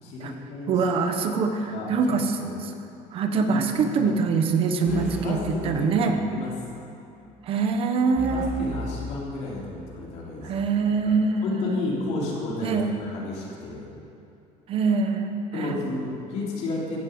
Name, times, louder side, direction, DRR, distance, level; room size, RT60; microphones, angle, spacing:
voice 1, 0.0-0.7 1.7-2.2 2.4-2.6 3.5-4.1 4.9-6.5 8.3-10.5 11.0-11.1 11.4-13.9 15.5-17.0, left 2 dB, 55° left, -4 dB, 3.3 m, -32 dB
voice 2, 0.7-2.7 3.1-6.2 7.5-8.5 10.4-11.9 12.6-13.0 14.7-15.8, right 4 dB, 45° right, 6 dB, 1.2 m, -24 dB
sound 1, 4.9-6.5 8.2-9.9, right 1 dB, 10° right, 1.6 m, -36 dB
15.0 x 10.5 x 7.9 m, 2.7 s
cardioid pair, 170°, 14 cm